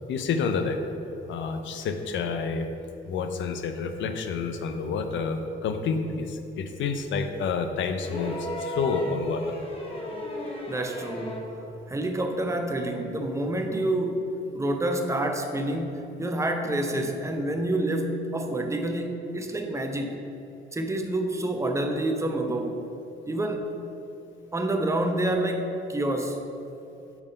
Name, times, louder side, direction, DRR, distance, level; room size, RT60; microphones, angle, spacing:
voice 1, 0.1-0.8 1.3-2.7 3.0-9.6, left 5 dB, 70° left, 7 dB, 0.6 m, -29 dB
sound 1, 8.0-11.6 12.9-13.0, left 1 dB, 30° left, 1.1 m, -35 dB
voice 2, 10.7-11.5 11.9-14.3 14.5-20.2 20.7-22.9 23.3-23.7 24.5-26.4, right 1 dB, 15° right, 4 dB, 0.7 m, -28 dB
7.1 x 3.7 x 5.3 m, 2.8 s
cardioid pair, 90°, 20 cm